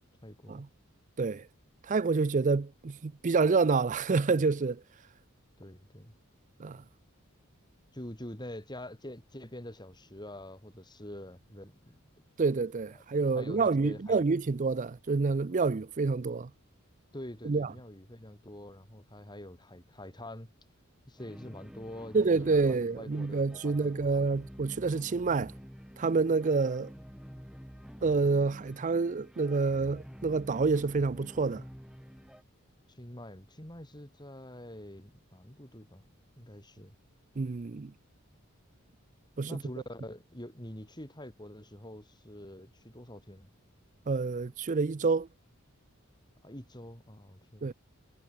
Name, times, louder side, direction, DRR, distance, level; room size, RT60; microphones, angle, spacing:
voice 1, 0.2-0.6 5.6-6.1 7.9-12.0 13.2-14.2 17.1-20.5 21.1-24.3 32.9-36.0 36.3-37.0 39.4-43.5 46.4-47.7, left 1 dB, 20° left, 5.2 m, -46 dB
voice 2, 1.8-4.8 6.6-6.8 12.4-16.5 17.4-17.7 22.1-25.5 26.0-26.9 28.0-31.6 37.4-37.9 39.4-39.6 44.1-45.3 47.6-47.7, right 4 dB, 35° right, 0.5 m, -28 dB
sound 1, 21.2-32.4, equal, 5° right, 2.8 m, -49 dB
head